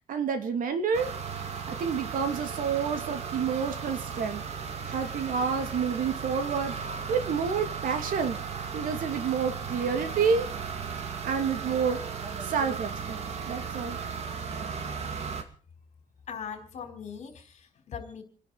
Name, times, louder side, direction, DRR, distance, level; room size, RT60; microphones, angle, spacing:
voice 1, 0.1-1.1 1.7-4.4 4.9-6.8 7.1-8.4 8.7-10.5 11.2-12.0 12.4-13.2 13.5-14.0, right 6 dB, 70° right, 7 dB, 2.6 m, -29 dB
sound 1, 0.9-15.4, right 6 dB, 50° right, 2.4 m, -36 dB
voice 2, 16.3-18.2, left 7 dB, 50° left, 6 dB, 4.1 m, -40 dB
29.5 x 11.0 x 4.1 m, 0.44 s
cardioid pair, 160°, 14 cm